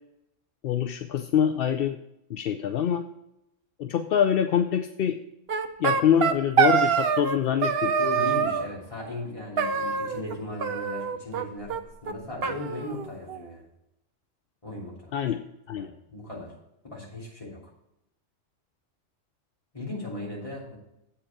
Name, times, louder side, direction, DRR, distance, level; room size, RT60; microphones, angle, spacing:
voice 1, 0.6-2.0 2.3-3.1 3.8-5.2 5.8-8.0 15.1-15.4 15.7-15.9, left 9 dB, 60° left, 7 dB, 0.6 m, -25 dB
sound 1, 5.5-7.4 7.6-8.7 9.6-10.3 10.6-11.4 11.7-11.8 12.1-12.2 12.4-13.5, right 7 dB, 55° right, 0.9 m, -25 dB
voice 2, 8.0-13.6 14.6-15.1 15.8-16.5 16.8-17.7 19.7-20.8, left 2 dB, 25° left, -4 dB, 3.3 m, -37 dB
8.2 x 5.8 x 7.1 m, 0.84 s
omnidirectional pair, 1.3 m